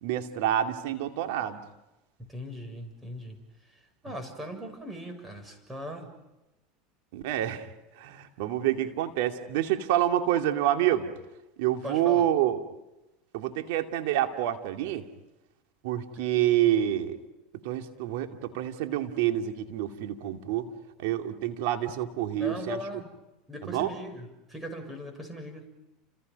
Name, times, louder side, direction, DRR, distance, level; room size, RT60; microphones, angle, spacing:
voice 1, 0.0-1.6 7.1-7.7 8.0-11.1 11.6-12.6 13.3-15.0 15.8-17.2 17.6-20.7 21.0-22.8 23.6-23.9, right 12 dB, 75° right, 5 dB, 2.5 m, -27 dB
voice 2, 2.3-3.4 4.0-6.1 11.8-12.3 22.4-23.2 23.5-25.6, equal, 15° right, 6 dB, 6.8 m, -39 dB
30.0 x 27.5 x 5.4 m, 0.99 s
hypercardioid pair, 100°, 0 cm